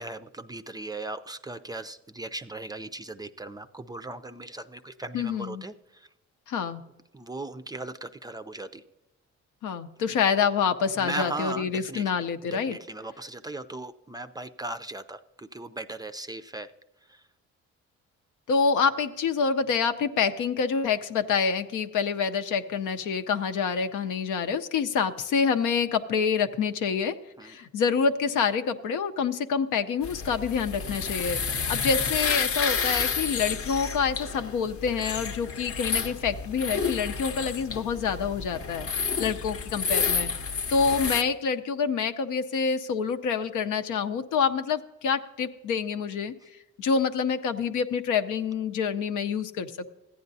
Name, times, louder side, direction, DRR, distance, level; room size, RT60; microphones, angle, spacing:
voice 1, 0.0-6.1 7.1-8.8 10.9-16.7 17.1-17.2 27.4-27.6 39.2-39.4, right 2 dB, 15° right, 9 dB, 0.4 m, -38 dB
voice 2, 5.1-5.6 6.5-6.8 9.6-12.8 18.5-27.2 27.4-38.9 39.2-40.3 40.7-46.3 46.8-49.9, left 6 dB, 85° left, 8 dB, 0.7 m, -27 dB
sound 1, 30.0-41.2, left 5 dB, 50° left, 0.7 m, -30 dB
14.5 x 9.5 x 2.7 m, 1.0 s
cardioid pair, 90°, 30 cm